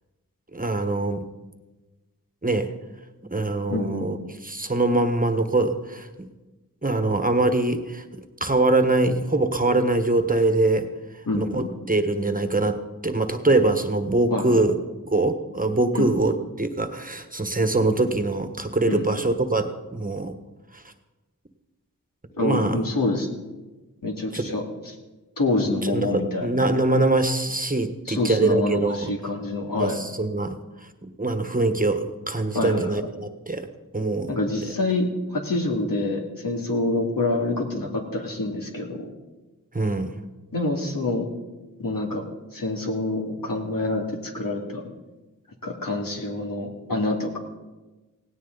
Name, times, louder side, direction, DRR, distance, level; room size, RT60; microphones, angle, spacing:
voice 1, 0.5-1.3 2.4-2.7 3.3-4.2 4.4-6.3 6.8-8.0 8.4-10.9 11.3-14.7 15.0-20.3 22.4-22.8 24.3-24.5 25.8-29.1 29.8-30.6 31.0-33.7 33.9-34.3 39.7-40.1, right 2 dB, 25° right, 8 dB, 1.3 m, -23 dB
voice 2, 3.7-4.1 11.3-11.9 14.3-14.6 15.9-16.1 18.8-19.3 22.4-23.3 24.0-24.9 25.4-26.5 28.1-30.0 32.5-33.0 34.3-39.1 40.5-41.3 41.8-42.2 42.5-44.8 45.6-47.4, left 2 dB, 75° left, 0 dB, 2.5 m, -26 dB
17.5 x 17.0 x 4.0 m, 1.2 s
wide cardioid pair, 55°, 34 cm